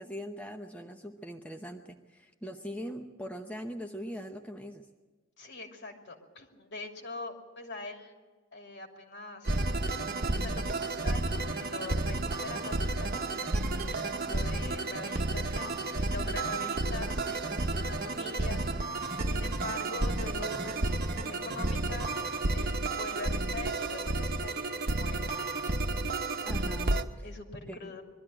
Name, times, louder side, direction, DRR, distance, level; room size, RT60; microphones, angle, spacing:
voice 1, 0.0-4.9 16.6-16.7 26.4-27.3 27.7-27.8, equal, 5° left, 3 dB, 0.8 m, -41 dB
voice 2, 5.4-8.2 8.5-9.5 10.2-18.9 19.3-22.1 22.5-25.3 27.2-28.0, left 3 dB, 55° left, 3 dB, 2.8 m, -43 dB
sound 1, 9.4-27.0, right 2 dB, 45° right, 1.1 m, -31 dB
21.5 x 13.0 x 9.9 m, 1.3 s
head